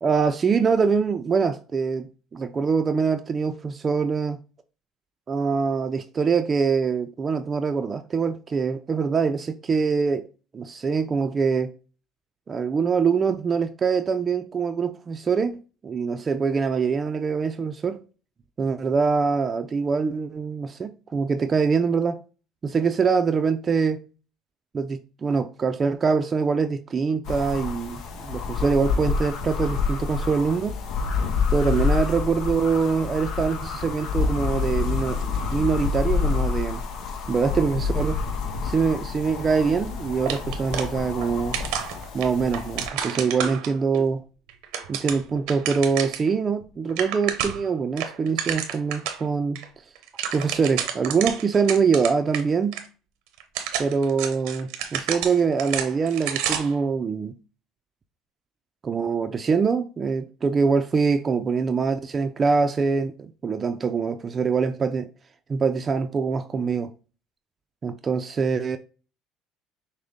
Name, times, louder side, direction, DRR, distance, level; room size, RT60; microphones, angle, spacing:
voice 1, 0.0-4.4 5.3-10.3 10.5-11.7 12.5-18.0 18.6-22.2 22.6-24.0 24.7-30.8 31.5-36.8 37.3-38.2 38.6-41.6 42.1-44.2 44.9-49.6 50.3-52.8 53.8-57.4 58.8-65.1 65.5-66.9 67.8-68.8, right 5 dB, 35° right, 0.4 m, -24 dB
sound 1, 27.3-42.9, left 5 dB, 65° left, 0.8 m, -28 dB
sound 2, 40.3-41.3 41.5-44.0 44.5-46.3 46.6-46.7 46.9-47.7 48.0-49.2 49.5-49.6 49.9-52.4 52.7-52.8 53.4-56.8, right 9 dB, 80° right, 0.7 m, -30 dB
6.2 x 2.1 x 3.5 m
supercardioid pair, 80°, 0 cm